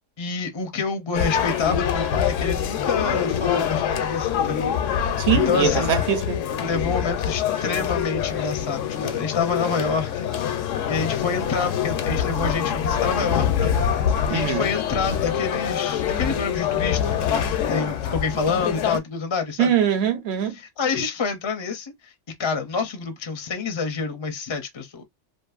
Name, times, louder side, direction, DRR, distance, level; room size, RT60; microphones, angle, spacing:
voice 1, 0.2-4.7 5.0-5.9 6.6-10.3 10.9-13.7 14.3-19.7 20.5-22.1 22.4-25.0, left 5 dB, 40° left, 0.4 m, -27 dB
sound 1, 1.1-19.0, left 8 dB, 85° left, 0.9 m, -25 dB
voice 2, 5.2-6.4 14.3-14.7 19.6-20.6, right 9 dB, 60° right, 0.9 m, -22 dB
2.6 x 2.5 x 2.3 m
omnidirectional pair, 1.3 m